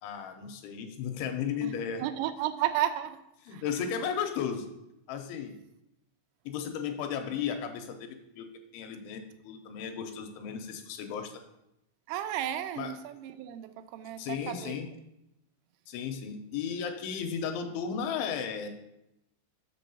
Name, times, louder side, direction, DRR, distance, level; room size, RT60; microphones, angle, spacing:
voice 1, 0.0-2.1 3.5-4.7 5.1-5.5 6.5-11.4 12.8-12.9 14.2-14.9 15.9-18.7, left 7 dB, 80° left, 6 dB, 3.1 m, -35 dB
voice 2, 2.0-3.2 3.5-3.6 12.1-14.8, right 12 dB, 85° right, 9 dB, 3.3 m, -33 dB
7.6 x 6.1 x 7.0 m, 0.85 s
omnidirectional pair, 5.7 m